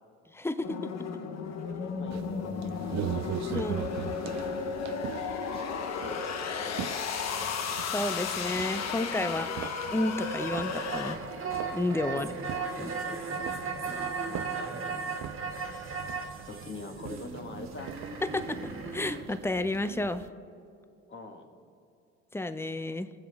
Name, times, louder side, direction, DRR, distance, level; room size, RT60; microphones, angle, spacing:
voice 1, 0.3-0.8 3.5-3.9 7.9-11.2 11.7-12.3 12.8-12.9 18.2-20.2 22.3-23.1, left 2 dB, 5° left, 11 dB, 0.7 m, -31 dB
sound 1, 0.6-11.1, left 5 dB, 55° left, 1.1 m, -34 dB
voice 2, 1.8-3.2 5.5-6.2 6.5-7.6 9.3-9.6 12.1-13.5 14.2-15.2 15.7-16.0 16.5-17.9 21.1-21.5, left 3 dB, 35° left, 3 dB, 2.0 m, -45 dB
sound 2, 2.1-20.3, right 11 dB, 55° right, 0.6 m, -42 dB
sound 3, 10.2-19.2, right 4 dB, 40° right, 1.9 m, -36 dB
22.0 x 7.7 x 3.5 m, 2.6 s
supercardioid pair, 70°, 33 cm